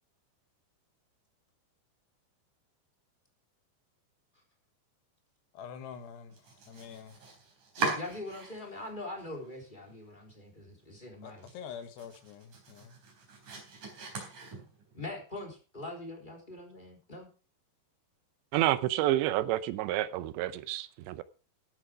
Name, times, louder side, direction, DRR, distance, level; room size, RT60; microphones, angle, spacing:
voice 1, 5.5-7.2 11.2-13.0, left 7 dB, 75° left, 3.3 m, -46 dB
Domestic sounds home sounds, 6.3-8.9 9.2-9.9 10.3-10.4 10.8-10.9 11.3-15.0, right 4 dB, 45° right, 5.2 m, -40 dB
voice 2, 7.8-11.5 14.9-17.3, left 2 dB, 10° left, 3.1 m, -42 dB
voice 3, 18.5-21.2, right 14 dB, 85° right, 3.0 m, -29 dB
15.0 x 9.0 x 4.9 m
omnidirectional pair, 5.1 m